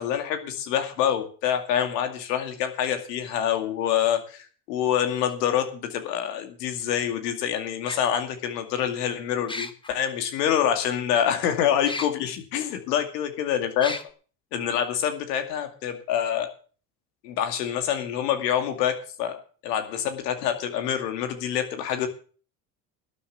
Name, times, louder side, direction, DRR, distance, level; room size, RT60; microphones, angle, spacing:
voice 1, 0.0-13.9 14.5-16.5 17.2-22.1, left 9 dB, 80° left, 6 dB, 2.4 m, -26 dB
sound 1, 5.3-5.4 6.8-6.9 7.9-8.0 9.5-9.9 11.9-12.1 12.7-12.8 13.8-14.0, left 2 dB, 10° left, 1.5 m, -33 dB
12.5 x 8.4 x 7.1 m, 0.40 s
hypercardioid pair, 80°, 48 cm